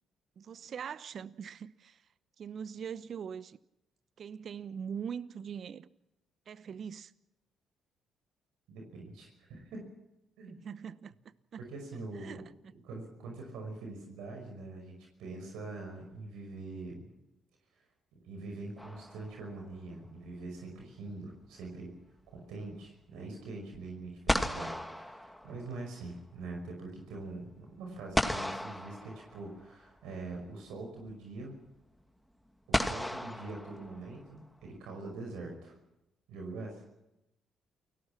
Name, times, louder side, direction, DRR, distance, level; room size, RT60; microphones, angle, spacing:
voice 1, 0.4-2.0 2.4-3.6 4.2-5.9 6.5-7.1 10.5-11.6 12.2-12.7, right 7 dB, 55° right, 0.9 m, -42 dB
voice 2, 8.7-9.8 10.4-10.6 11.6-12.4 12.8-17.1 18.2-21.9 22.3-31.6 32.7-35.8 36.3-36.8, right 3 dB, 75° right, 5.6 m, -43 dB
sound 1, 18.8-19.7 23.7-23.8 24.3-26.0 28.2-29.7 31.1-31.2 32.7-34.4, left 1 dB, 5° left, 2.4 m, -34 dB
29.0 x 18.0 x 6.0 m
hypercardioid pair, 45°, 0 cm